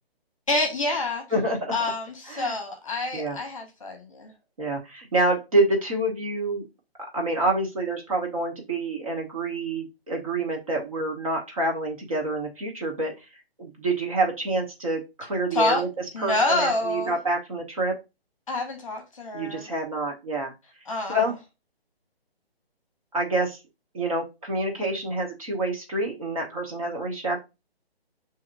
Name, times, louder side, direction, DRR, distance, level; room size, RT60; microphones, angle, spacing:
voice 1, 0.5-1.2 1.7-4.3 15.5-15.8 16.1-17.2 18.5-19.7 20.9-21.3, left 2 dB, 30° left, 3 dB, 0.9 m, -27 dB
voice 2, 1.3-1.7 2.3-2.6 3.1-3.4 4.6-6.6 7.1-13.1 13.6-15.9 16.2-17.9 19.3-20.5 21.1-21.4 23.1-23.6 23.9-27.4, right 2 dB, 35° right, 1 dB, 1.1 m, -27 dB
6.6 x 2.9 x 2.5 m, 0.25 s
hypercardioid pair, 175°, 31 cm